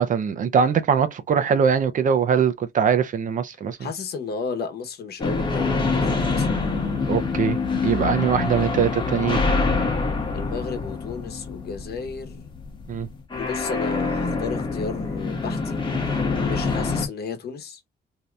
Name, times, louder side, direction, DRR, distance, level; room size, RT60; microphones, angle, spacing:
voice 1, 0.0-3.9 7.1-7.6 7.8-9.4 12.9-13.1, right 7 dB, 50° right, 0.5 m, -22 dB
voice 2, 3.8-6.7 10.3-12.5 13.4-17.8, left 5 dB, 65° left, 1.0 m, -33 dB
sound 1, 5.2-17.1, left 4 dB, 25° left, 1.0 m, -25 dB
2.8 x 2.3 x 3.2 m
cardioid pair, 125°, 17 cm